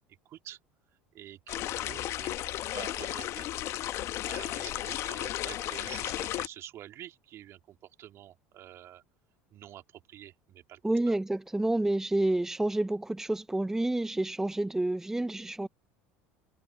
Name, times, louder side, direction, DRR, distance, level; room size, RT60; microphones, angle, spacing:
voice 1, 0.2-0.6 1.1-3.5 4.3-9.0 9.5-10.8 11.1-11.2, right 12 dB, 50° right, 2.7 m, -47 dB
sound 1, 1.5-6.5, left 14 dB, 55° left, 1.3 m, -34 dB
voice 2, 10.8-15.7, right 1 dB, 10° right, 0.9 m, -29 dB
hypercardioid pair, 85°, 6 cm